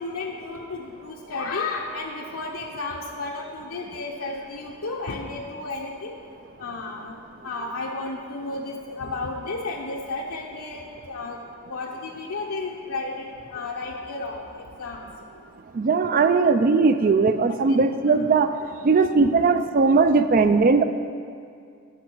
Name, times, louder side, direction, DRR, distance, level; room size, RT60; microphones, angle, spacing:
voice 1, 0.0-6.1 6.6-7.2 7.4-11.4 11.7-13.2 13.5-15.0 18.1-18.2, left 3 dB, 85° left, -1 dB, 0.7 m, -33 dB
voice 2, 15.8-18.5 18.8-20.8, right 4 dB, 40° right, 10 dB, 0.3 m, -19 dB
11.0 x 6.1 x 4.5 m, 2.3 s
head